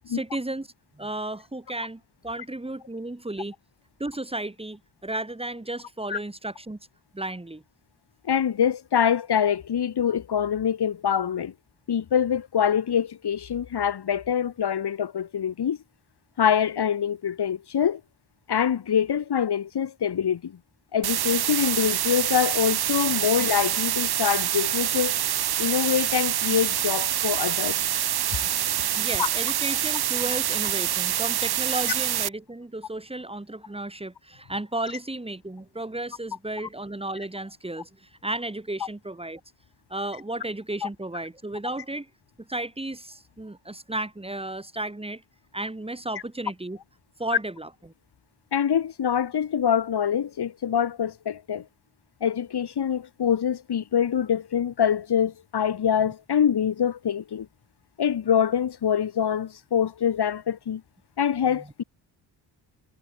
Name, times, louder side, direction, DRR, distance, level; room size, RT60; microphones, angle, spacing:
voice 1, 0.1-3.5 4.0-6.8 7.1-7.6 23.4-23.5 29.0-39.4 39.9-42.1 42.4-45.2 45.5-46.8 47.2-47.9, right 2 dB, 15° right, 5.8 m, -34 dB
voice 2, 8.2-11.5 11.9-15.8 16.4-18.0 18.5-20.6 20.9-25.2 25.6-27.8 29.2-29.3 40.8-40.9 48.5-51.6 52.2-57.5 58.0-60.8 61.2-61.8, left 8 dB, 65° left, 5.6 m, -25 dB
sound 1, 21.0-32.3, right 11 dB, 60° right, 1.0 m, -26 dB
cardioid pair, 115°, 42 cm